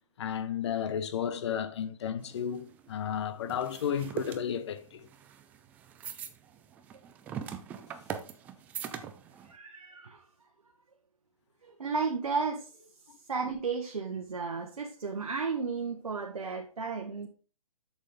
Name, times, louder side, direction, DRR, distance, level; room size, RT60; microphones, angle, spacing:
voice 1, 0.2-5.1, left 8 dB, 50° left, 0.9 m, -33 dB
sound 1, 2.2-9.5, right 8 dB, 10° right, 0.3 m, -42 dB
voice 2, 9.5-10.2 11.6-12.9 13.3-17.3, right 4 dB, 85° right, 1.4 m, -33 dB
8.1 x 6.5 x 3.7 m
hypercardioid pair, 145°, 18 cm